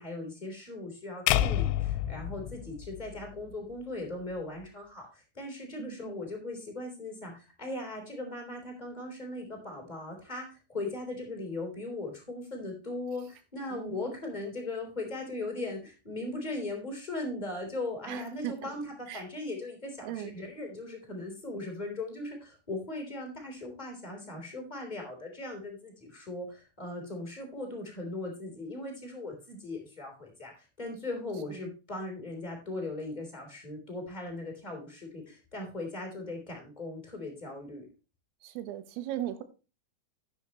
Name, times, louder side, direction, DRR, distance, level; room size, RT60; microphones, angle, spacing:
voice 1, 0.0-37.9, left 2 dB, 10° left, 3.1 m, -39 dB
sound 1, 1.3-3.5, left 12 dB, 85° left, 3.1 m, -29 dB
voice 2, 5.8-6.2 13.7-14.1 18.1-18.6 19.1-19.2 20.0-20.4 31.5-31.7 38.4-39.4, right 13 dB, 90° right, 3.9 m, -38 dB
10.5 x 9.5 x 3.1 m
omnidirectional pair, 5.8 m